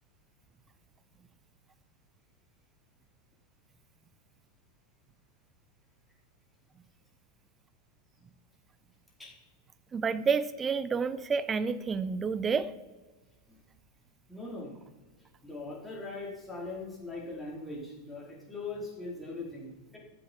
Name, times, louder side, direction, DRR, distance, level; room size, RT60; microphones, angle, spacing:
voice 1, 9.9-12.7, right 5 dB, 20° right, 15 dB, 0.7 m, -29 dB
voice 2, 14.3-14.8 15.4-20.0, left 3 dB, 5° left, -4 dB, 4.4 m, -40 dB
15.0 x 11.0 x 4.7 m, 1.2 s
figure-of-eight pair, 90°, 0 cm